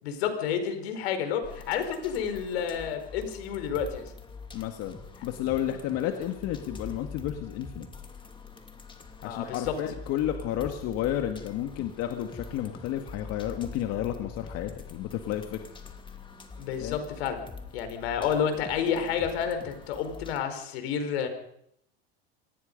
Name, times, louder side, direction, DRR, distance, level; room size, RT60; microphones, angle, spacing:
voice 1, 0.0-4.1 9.2-9.7 16.6-17.4 17.7-21.3, left 8 dB, 80° left, 8 dB, 4.8 m, -30 dB
sound 1, 1.4-20.4, left 4 dB, 15° left, 2.8 m, -45 dB
voice 2, 4.5-5.0 5.2-7.9 9.2-15.6 16.8-17.0, left 11 dB, 50° left, 5 dB, 2.1 m, -31 dB
26.0 x 19.5 x 5.4 m, 0.73 s
supercardioid pair, 120°, 31 cm